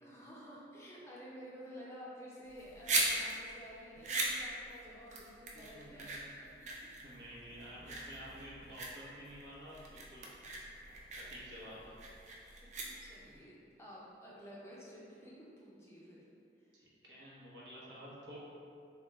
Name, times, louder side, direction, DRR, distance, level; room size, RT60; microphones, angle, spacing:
voice 1, 0.0-6.1 6.6-6.7 11.6-12.0 12.8-16.2, equal, 15° left, -6 dB, 0.5 m, -52 dB
sound 1, 2.5-13.4, right 2 dB, 40° right, 0.4 m, -39 dB
voice 2, 5.5-6.2 6.5-10.3 11.1-11.8 16.7-18.4, equal, 85° right, -7 dB, 0.9 m, -51 dB
3.6 x 2.3 x 3.1 m, 2.5 s
head